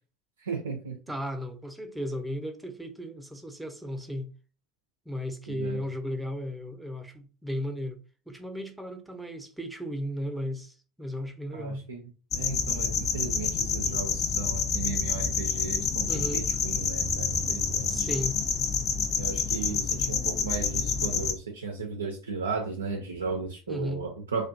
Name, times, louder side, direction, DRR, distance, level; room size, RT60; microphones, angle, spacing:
voice 1, 0.4-1.0 5.5-5.8 11.5-18.1 19.2-24.5, right 4 dB, 85° right, 0.4 m, -35 dB
voice 2, 1.1-4.3 5.1-8.0 8.3-11.8 16.1-16.5 17.9-18.4 23.7-24.0, equal, 5° right, 0.6 m, -35 dB
sound 1, 12.3-21.3, left 5 dB, 40° left, 0.5 m, -28 dB
2.5 x 2.2 x 2.5 m
hypercardioid pair, 70°, 0 cm